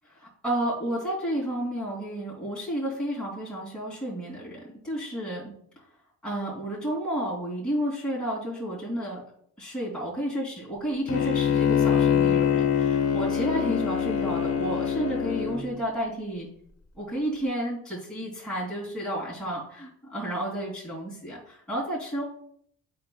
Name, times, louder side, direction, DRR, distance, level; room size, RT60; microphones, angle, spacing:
voice 1, 0.1-5.8 6.2-9.2 9.6-16.5 17.0-22.2, right 1 dB, 5° left, -7 dB, 2.8 m, -31 dB
Bowed string instrument, 11.1-15.6, left 8 dB, 50° left, 1.0 m, -24 dB
9.3 x 4.6 x 2.3 m, 0.67 s
cardioid pair, 90°, 30 cm